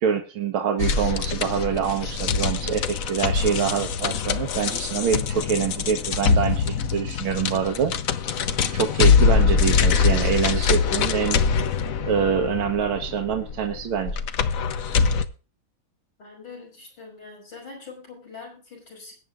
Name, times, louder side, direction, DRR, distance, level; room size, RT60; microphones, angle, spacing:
voice 1, 0.0-7.9 8.7-11.4 12.0-14.2, right 7 dB, 80° right, 3 dB, 1.8 m, -25 dB
sound 1, 0.8-15.3, left 6 dB, 60° left, 0.9 m, -23 dB
voice 2, 16.2-19.1, left 4 dB, 80° left, 0 dB, 6.7 m, -43 dB
21.0 x 9.2 x 2.4 m, 0.35 s
omnidirectional pair, 2.3 m